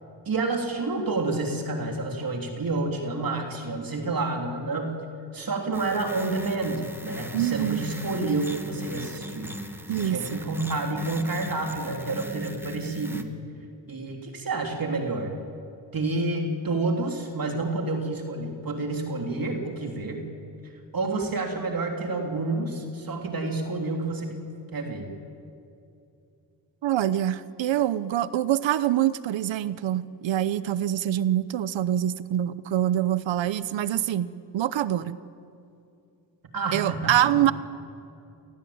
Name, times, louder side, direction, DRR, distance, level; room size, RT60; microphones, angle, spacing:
voice 1, 0.2-5.0 5.3-9.5 9.9-13.3 13.9-15.3 15.9-20.3 20.9-24.4 24.7-25.1 36.5-37.5, right 3 dB, 50° right, 2 dB, 3.4 m, -29 dB
sound 1, 5.7-13.2, right 1 dB, 5° right, 1.9 m, -39 dB
voice 2, 7.3-7.8 9.9-10.4 26.8-35.2 36.7-37.5, right 12 dB, 85° right, 16 dB, 0.9 m, -25 dB
28.0 x 19.0 x 8.7 m, 2.6 s
cardioid pair, 75°, 44 cm